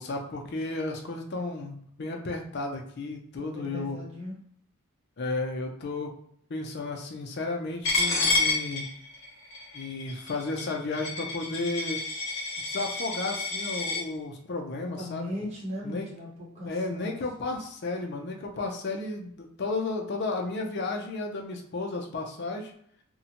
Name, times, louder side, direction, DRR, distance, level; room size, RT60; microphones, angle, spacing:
voice 1, 0.0-4.0 5.2-6.1 6.5-8.9 9.7-12.0 12.6-15.3 15.8-16.1 16.6-22.7, left 3 dB, 50° left, 2 dB, 0.4 m, -33 dB
voice 2, 3.4-4.4 15.0-17.2, left 1 dB, 30° right, -5 dB, 0.9 m, -38 dB
Coin (dropping), 7.8-14.0, left 3 dB, 65° left, 0.9 m, -29 dB
2.6 x 2.1 x 2.8 m, 0.67 s
head